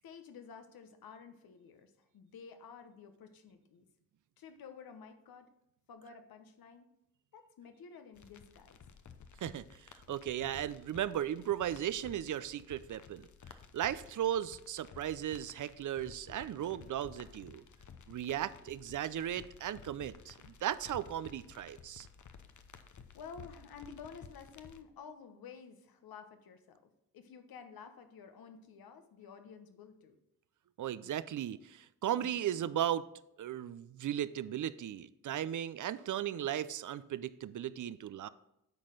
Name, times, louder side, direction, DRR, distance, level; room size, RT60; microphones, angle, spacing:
voice 1, 0.0-3.9 4.4-5.5 5.9-6.9 7.3-8.8 23.1-30.2, left 6 dB, 75° left, 8 dB, 1.1 m, -52 dB
sound 1, 8.2-24.8, left 6 dB, 55° left, 0.9 m, -55 dB
voice 2, 10.1-13.3 13.7-17.6 18.1-22.1 30.8-33.0 33.4-38.3, right 11 dB, 55° right, 16 dB, 0.6 m, -36 dB
9.7 x 4.2 x 6.5 m, 0.84 s
supercardioid pair, 55°, 36 cm